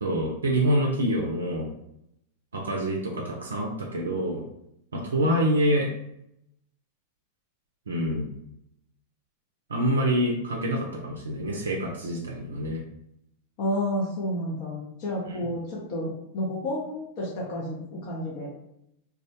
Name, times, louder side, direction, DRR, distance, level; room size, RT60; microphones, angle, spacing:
voice 1, 0.0-1.7 2.5-4.4 4.9-5.9 7.9-8.3 9.7-12.8 15.3-15.4, equal, 85° right, 0 dB, 0.3 m, -26 dB
voice 2, 5.2-5.6 13.6-18.5, left 1 dB, 55° left, -4 dB, 0.6 m, -31 dB
2.1 x 2.0 x 2.7 m, 0.79 s
hypercardioid pair, 95°, 0 cm